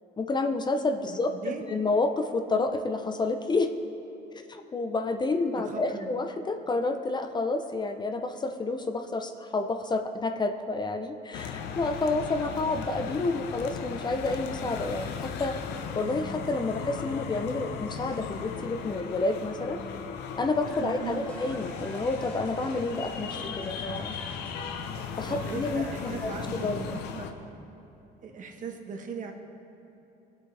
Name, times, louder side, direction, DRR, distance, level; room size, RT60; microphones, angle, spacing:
voice 1, 0.2-3.7 4.5-15.6 15.9-19.8 20.4-24.2 25.2-27.0, left 3 dB, 25° left, 6 dB, 0.6 m, -29 dB
voice 2, 1.1-1.8 5.6-6.1 20.8-21.3 25.3-27.3 28.2-29.3, right 6 dB, 50° right, 3 dB, 1.3 m, -39 dB
sound 1, 11.3-27.3, left 6 dB, 85° left, 0.8 m, -37 dB
sound 2, 20.7-27.3, equal, 10° left, 1.7 m, -47 dB
18.5 x 8.2 x 3.3 m, 2.9 s
cardioid pair, 110°, 17 cm